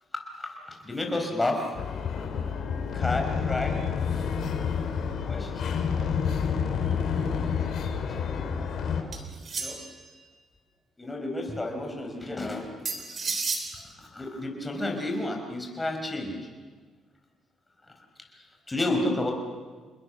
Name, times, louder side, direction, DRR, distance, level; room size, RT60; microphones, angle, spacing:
voice 1, 0.4-1.7 2.9-3.8 5.3-5.8 8.1-8.3 9.5-9.8 11.0-12.7 13.2-13.3 13.7-16.3 18.3-19.3, left 2 dB, 20° left, 2 dB, 5.5 m, -31 dB
sound 1, 1.7-9.0, left 6 dB, 70° left, 3.0 m, -29 dB
sound 2, 9.1-10.0 12.8-13.7, right 4 dB, 45° right, 3.9 m, -32 dB
28.5 x 21.0 x 6.7 m, 1.5 s
cardioid pair, 90°, 0 cm